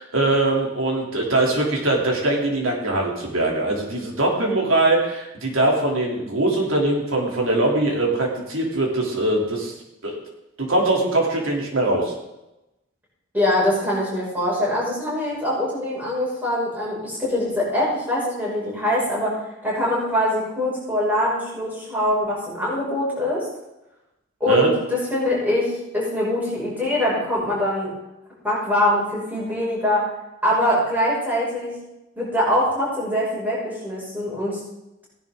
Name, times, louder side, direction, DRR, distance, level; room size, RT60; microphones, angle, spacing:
voice 1, 0.0-9.7 10.0-10.2 10.6-12.1 24.5-24.7, right 2 dB, 85° right, -1 dB, 3.2 m, -21 dB
voice 2, 13.3-19.3 19.6-23.4 24.4-27.9 28.4-30.0 30.4-31.7 32.2-34.6, left 1 dB, 10° right, -7 dB, 5.8 m, -23 dB
16.0 x 10.5 x 3.8 m, 0.93 s
head